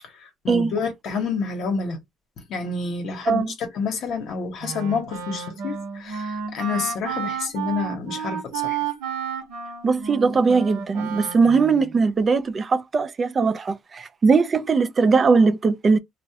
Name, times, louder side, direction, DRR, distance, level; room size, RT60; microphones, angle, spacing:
voice 1, 0.4-2.0 2.5-3.4 3.7-8.8, left 5 dB, 60° left, 0.8 m, -28 dB
Wind instrument woodwind instrument, 4.6-11.9, right 7 dB, 90° right, 0.8 m, -31 dB
voice 2, 9.8-16.0, right 4 dB, 30° right, 0.4 m, -20 dB
2.3 x 2.0 x 2.7 m
cardioid pair, 115°, 0 cm